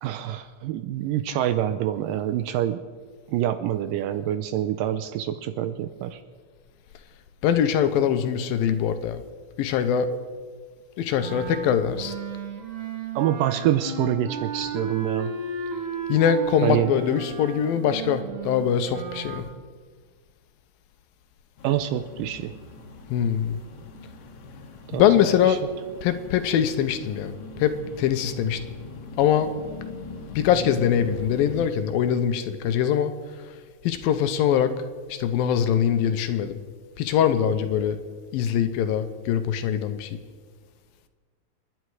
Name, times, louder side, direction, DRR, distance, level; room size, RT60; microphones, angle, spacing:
voice 1, 0.0-2.8 3.3-6.2 13.2-15.3 16.6-16.9 21.6-22.6 24.9-25.6, right 11 dB, 80° right, 11 dB, 2.1 m, -26 dB
voice 2, 7.4-9.2 9.6-10.2 11.0-12.1 16.1-19.5 23.1-23.6 24.9-25.6 26.0-27.3 27.6-28.6 29.2-29.5 30.4-33.1 33.8-34.8 35.1-36.6 37.0-38.0 38.3-40.1, left 9 dB, 80° left, 9 dB, 2.6 m, -23 dB
Wind instrument woodwind instrument, 11.2-19.5, right 4 dB, 60° right, 1.6 m, -34 dB
sound 1, 21.6-31.7, left 4 dB, 50° left, 2.1 m, -40 dB
27.5 x 10.5 x 4.8 m, 1.5 s
omnidirectional pair, 4.2 m